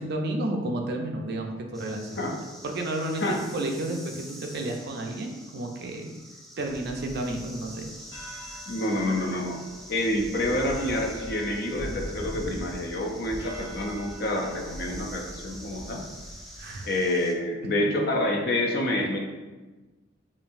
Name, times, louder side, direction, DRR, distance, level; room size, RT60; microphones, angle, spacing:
voice 1, 0.0-6.1 6.6-7.9 8.2-8.6 16.6-16.9 17.8-17.9 19.0-19.1, right 1 dB, 55° right, 3 dB, 0.5 m, -32 dB
sound 1, 1.7-17.3, equal, ahead, 0.4 m, -46 dB
sound 2, 6.7-16.6, equal, 75° left, 1.1 m, -42 dB
voice 2, 8.7-9.6 9.9-16.0 16.9-19.2, left 1 dB, 50° left, 1 dB, 0.5 m, -27 dB
5.1 x 2.6 x 2.5 m, 1.2 s
head